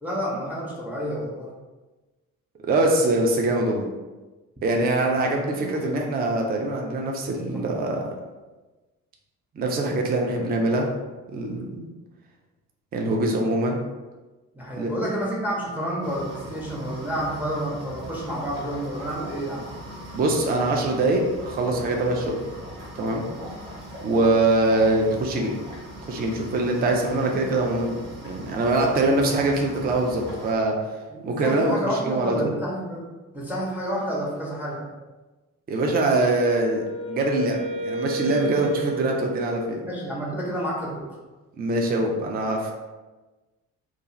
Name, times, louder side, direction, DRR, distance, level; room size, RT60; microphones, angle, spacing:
voice 1, 0.0-1.5 5.1-6.0 14.5-19.7 31.1-33.0 33.3-34.9 39.8-41.2, equal, 5° right, -4 dB, 0.8 m, -30 dB
voice 2, 2.7-3.9 4.6-8.0 9.6-10.9 11.3-11.9 12.9-13.8 14.8-14.9 20.1-22.4 23.0-23.3 24.0-25.5 26.1-30.8 31.2-31.8 32.0-32.5 35.7-39.8 41.6-42.7, right 2 dB, 25° right, 1 dB, 0.5 m, -23 dB
sound 1, 16.0-30.5, equal, 65° right, 0.9 m, -40 dB
Wind instrument woodwind instrument, 36.3-40.2, right 3 dB, 50° right, 1.3 m, -32 dB
2.4 x 2.3 x 3.0 m, 1.2 s
figure-of-eight pair, 45°, 42 cm